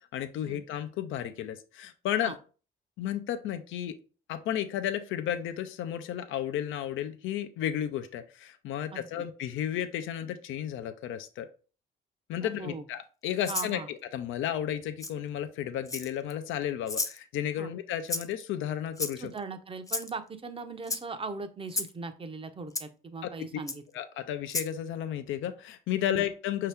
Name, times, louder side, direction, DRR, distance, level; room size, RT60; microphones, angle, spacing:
voice 1, 0.1-2.3 3.0-4.0 4.3-11.5 12.3-19.3 23.2-23.5 23.9-26.7, left 10 dB, 85° left, 9 dB, 0.5 m, -33 dB
voice 2, 12.4-12.8 13.5-13.9 17.6-17.7 19.2-23.8 26.1-26.2, right 4 dB, 25° right, 9 dB, 0.6 m, -39 dB
Rattle (instrument), 13.4-13.7 15.0-15.1 15.9-16.3 16.9-17.2 18.1-18.4 19.0-19.4 19.9-20.1 20.8-21.0 21.7-21.9 22.8-22.9 23.7-23.8 24.5-24.7, left 3 dB, 15° left, 0.4 m, -32 dB
5.5 x 2.8 x 3.4 m, 0.36 s
cardioid pair, 90°, 20 cm